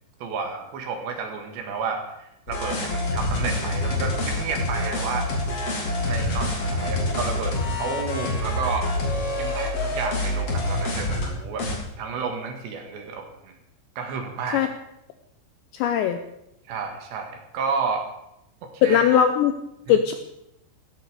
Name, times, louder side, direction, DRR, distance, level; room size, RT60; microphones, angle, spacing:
voice 1, 0.2-5.3 5.6-8.9 9.4-11.7 12.0-13.6 14.0-14.6 16.7-18.1 18.7-19.0 19.9-20.0, right 5 dB, 65° right, 4 dB, 3.6 m, -31 dB
sound 1, 2.5-11.3 11.6-11.8, left 1 dB, 35° left, 3.4 m, -26 dB
voice 2, 15.7-16.2 18.8-19.5 19.9-20.1, left 9 dB, 80° left, 8 dB, 2.6 m, -19 dB
16.5 x 15.0 x 5.0 m, 0.83 s
omnidirectional pair, 5.9 m